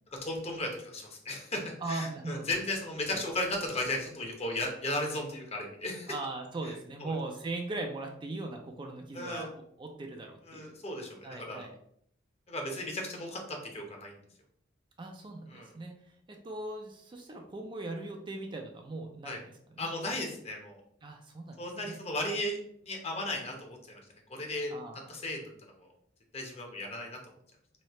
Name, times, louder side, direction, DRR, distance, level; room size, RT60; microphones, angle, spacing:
voice 1, 0.2-6.1 7.0-7.1 9.1-9.5 10.5-11.7 12.5-14.2 15.5-15.7 19.2-19.4 19.8-20.8 21.6-22.6 22.8-24.0 24.3-24.7 25.1-25.5 25.8-25.9 26.3-27.2, left 1 dB, 35° left, 1 dB, 0.9 m, -35 dB
voice 2, 1.8-2.5 3.1-3.2 6.1-10.8 11.2-11.7 15.0-19.5 19.7-19.9 21.0-22.0 24.7-25.0, right 2 dB, 25° right, 2 dB, 0.4 m, -39 dB
3.2 x 2.8 x 4.1 m, 0.69 s
head